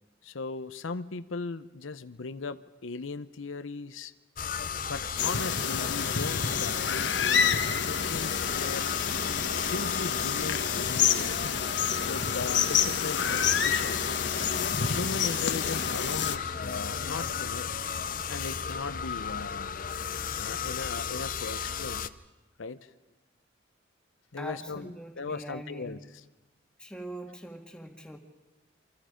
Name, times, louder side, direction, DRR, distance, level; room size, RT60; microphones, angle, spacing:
voice 1, 0.2-4.1 4.9-8.9 9.5-11.5 12.0-14.1 14.8-17.8 18.3-19.7 20.4-22.1 22.6-22.9 24.3-26.0, left 4 dB, 90° left, 12 dB, 0.8 m, -38 dB
sound 1, 4.4-22.1, left 7 dB, 45° left, 0.7 m, -34 dB
sound 2, 5.2-16.4, left 7 dB, 65° left, 1.3 m, -29 dB
voice 2, 24.4-26.0 26.8-28.2, equal, 5° left, 3 dB, 1.9 m, -42 dB
28.5 x 24.5 x 5.1 m, 1.1 s
head